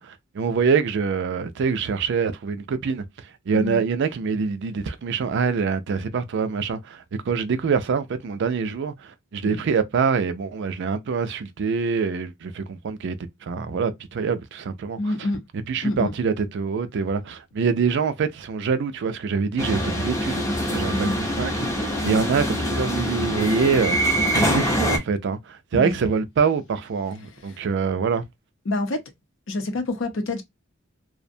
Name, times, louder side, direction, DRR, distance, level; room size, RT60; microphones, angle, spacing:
voice 1, 0.0-15.1 15.7-21.1 21.4-28.2, right 5 dB, 60° right, 0.4 m, -25 dB
voice 2, 15.0-15.4 15.8-16.1 20.9-21.2 22.0-22.2 25.7-26.0 27.5-27.6 28.7-29.0 29.5-30.4, left 2 dB, 65° left, 0.6 m, -27 dB
sound 1, 19.6-25.0, equal, 15° left, 0.6 m, -24 dB
2.5 x 2.1 x 2.6 m
head